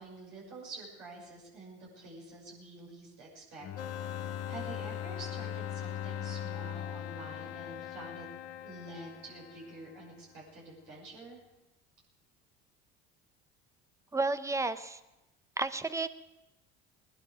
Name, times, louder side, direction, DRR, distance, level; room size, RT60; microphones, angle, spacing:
voice 1, 0.0-3.7 3.9-8.3 8.6-11.4, right 2 dB, 70° right, -4 dB, 6.2 m, -48 dB
Bowed string instrument, 3.6-8.6, left 9 dB, 50° left, 1.0 m, -41 dB
sound 1, 3.8-10.2, left 10 dB, 90° left, 0.9 m, -44 dB
voice 2, 14.1-15.0 15.6-16.1, right 3 dB, 10° right, 13 dB, 0.8 m, -31 dB
19.5 x 11.0 x 5.1 m, 0.96 s
hypercardioid pair, 75°, 31 cm